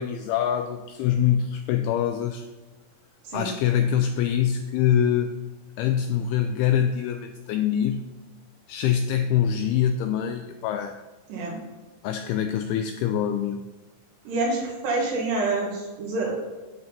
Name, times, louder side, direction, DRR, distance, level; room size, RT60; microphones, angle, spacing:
voice 1, 0.0-2.5 3.3-5.4 5.8-8.1 8.7-11.0 12.0-13.6, left 9 dB, 85° left, 6 dB, 2.2 m, -24 dB
voice 2, 14.3-16.3, right 3 dB, 75° right, -2 dB, 4.0 m, -27 dB
10.5 x 3.9 x 7.2 m, 1.2 s
omnidirectional pair, 4.9 m